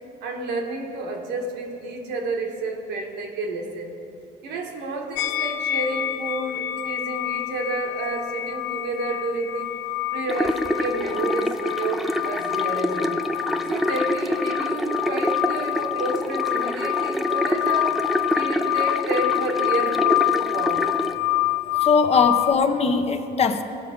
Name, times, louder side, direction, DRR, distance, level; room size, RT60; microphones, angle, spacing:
voice 1, 0.2-3.9 4.4-9.7 10.1-13.2 13.7-18.0 18.3-20.9, right 2 dB, 85° right, 2 dB, 1.5 m, -30 dB
sound 1, 5.2-22.5, left 16 dB, 75° left, 0.5 m, -27 dB
sound 2, 10.3-21.1, equal, ahead, 0.5 m, -27 dB
voice 2, 21.8-23.6, left 5 dB, 40° left, 8 dB, 0.8 m, -20 dB
17.5 x 5.9 x 5.1 m, 2.9 s
cardioid pair, 110°, 17 cm